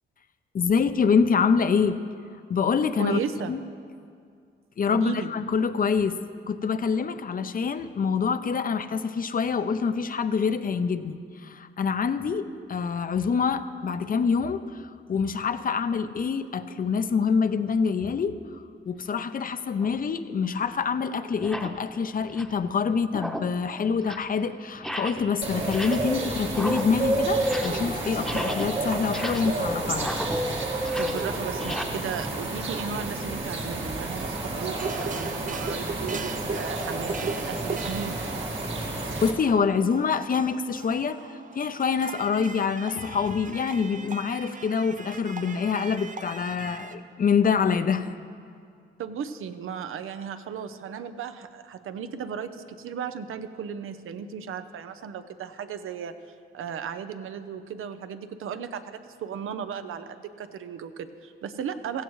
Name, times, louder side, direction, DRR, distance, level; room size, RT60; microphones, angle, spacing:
voice 1, 0.5-2.0 2.5-3.2 3.5-3.6 4.8-6.2 6.5-18.4 18.9-30.2 38.8-48.1, left 6 dB, 45° left, 11 dB, 0.6 m, -26 dB
voice 2, 3.0-3.5 4.9-5.3 31.0-38.2 49.0-56.1 56.5-62.0, right 7 dB, 80° right, 10 dB, 0.7 m, -35 dB
sound 1, 19.8-20.0 20.7-20.8 21.3-21.8 22.2-22.6 23.0-23.6 23.9-24.3 24.7-25.3 25.6-26.2 26.4-27.9 28.1-31.8, equal, ahead, 0.9 m, -35 dB
sound 2, 25.4-39.3, right 2 dB, 65° right, 2.0 m, -30 dB
sound 3, 34.7-46.9, right 4 dB, 40° right, 0.6 m, -39 dB
16.0 x 15.0 x 3.1 m, 2.3 s
cardioid pair, 95°, 21 cm